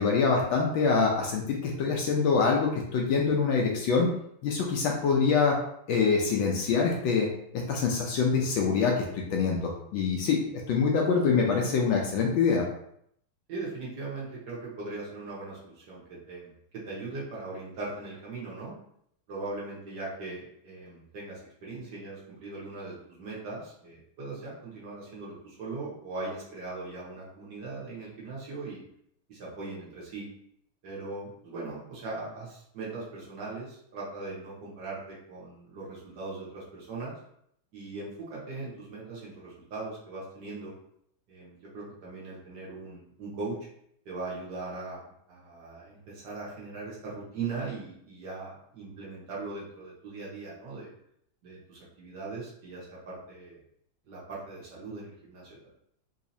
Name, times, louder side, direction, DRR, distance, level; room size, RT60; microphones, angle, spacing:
voice 1, 0.0-4.1 4.4-5.5 5.9-7.3 7.5-10.4 10.7-12.6, left 5 dB, 75° left, 0 dB, 1.2 m, -25 dB
voice 2, 13.5-18.7 19.3-28.8 29.3-30.2 30.8-37.1 37.7-40.7 41.3-43.6 44.0-50.9 51.4-53.6 54.1-55.7, right 3 dB, 60° right, -6 dB, 1.6 m, -39 dB
4.0 x 2.8 x 2.7 m, 0.70 s
omnidirectional pair, 2.3 m